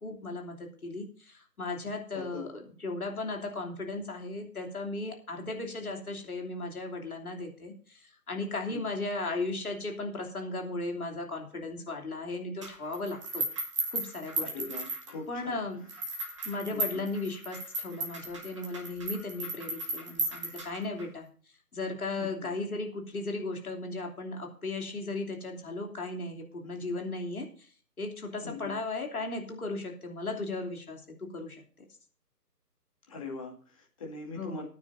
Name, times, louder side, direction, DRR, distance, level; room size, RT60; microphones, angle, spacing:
voice 1, 0.0-13.5 13.9-14.6 15.3-15.9 16.4-21.3 21.7-27.7 28.0-31.8 34.4-34.7, left 2 dB, 60° left, 2 dB, 3.1 m, -36 dB
voice 2, 2.1-2.5 8.7-8.8 14.4-15.6 16.7-17.0 22.2-22.5 28.4-28.7 33.1-34.7, left 4 dB, 20° left, -1 dB, 2.2 m, -42 dB
sound 1, 12.6-15.4 15.9-21.0, right 2 dB, 20° right, 1.5 m, -35 dB
20.5 x 9.4 x 2.7 m, 0.43 s
figure-of-eight pair, 155°, 49 cm